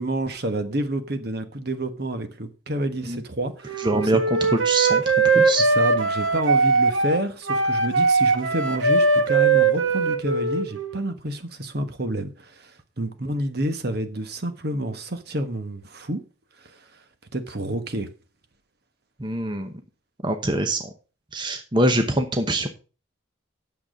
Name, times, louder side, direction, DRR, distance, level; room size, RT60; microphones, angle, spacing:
voice 1, 0.0-4.1 5.7-16.2 16.6-16.8 17.3-18.1, right 1 dB, 55° right, 1.2 m, -29 dB
Wind instrument woodwind instrument, 3.6-11.1, right 4 dB, 80° right, 1.4 m, -20 dB
voice 2, 3.8-4.2 4.5-5.0 5.3-5.7 19.2-19.7 20.2-20.9 21.3-22.7, right 1 dB, 25° right, 0.9 m, -24 dB
8.9 x 7.1 x 5.1 m
head